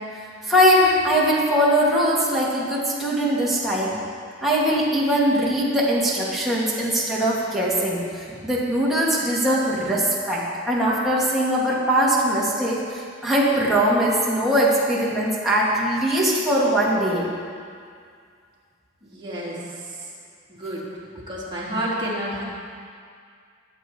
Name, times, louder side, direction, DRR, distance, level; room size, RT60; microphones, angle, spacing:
voice 1, 0.5-4.0 4.4-17.2, equal, ahead, -7 dB, 2.4 m, -21 dB
voice 2, 19.0-20.1 20.5-20.8 21.1-22.4, right 1 dB, 25° right, -8 dB, 3.8 m, -30 dB
22.0 x 8.1 x 4.7 m, 2.2 s
head